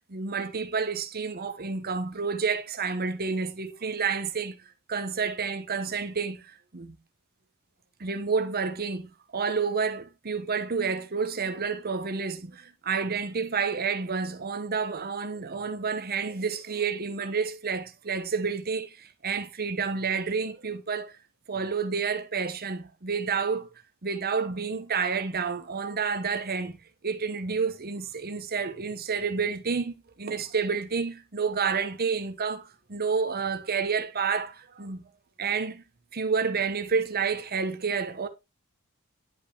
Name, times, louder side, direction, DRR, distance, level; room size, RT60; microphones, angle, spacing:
voice 1, 0.1-4.6 4.9-7.0 8.0-21.2 21.5-23.7 24.0-26.8 27.0-35.0 35.4-35.8 36.1-38.3, right 5 dB, 45° right, 1.1 m, -29 dB
10.5 x 5.3 x 3.3 m
head